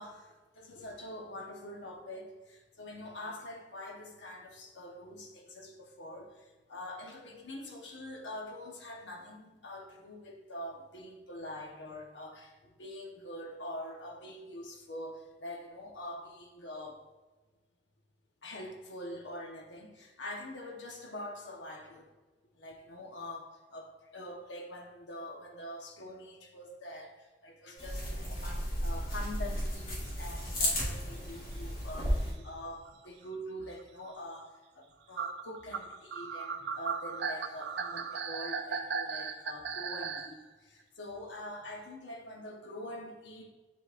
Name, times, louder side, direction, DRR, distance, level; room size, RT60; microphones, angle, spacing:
voice 1, 0.0-17.0 18.4-22.1 22.5-43.5, left 1 dB, 80° left, 2 dB, 1.0 m, -45 dB
sound 1, 27.8-32.3, equal, 55° left, 2.1 m, -34 dB
sound 2, 31.2-31.3 31.6-31.8 32.6-32.7 32.9-33.0 33.6-33.8 34.4-34.5 35.2-40.3, right 5 dB, 70° right, 0.5 m, -37 dB
10.5 x 4.1 x 2.5 m, 1.2 s
head